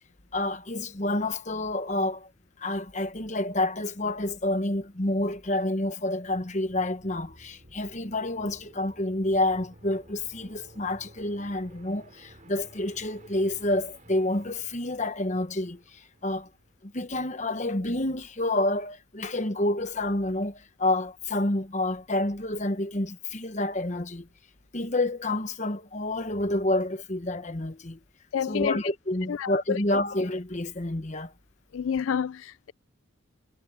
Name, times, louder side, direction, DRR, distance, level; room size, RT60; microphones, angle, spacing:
voice 1, 0.3-2.3 2.6-16.5 16.8-24.3 24.7-28.0 28.5-31.3, left 1 dB, 35° left, 1.2 m, -29 dB
sound 1, 6.2-17.0, right 1 dB, 35° right, 4.0 m, -55 dB
voice 2, 28.3-28.8 29.3-29.8 31.7-32.7, left 7 dB, 70° left, 0.3 m, -29 dB
head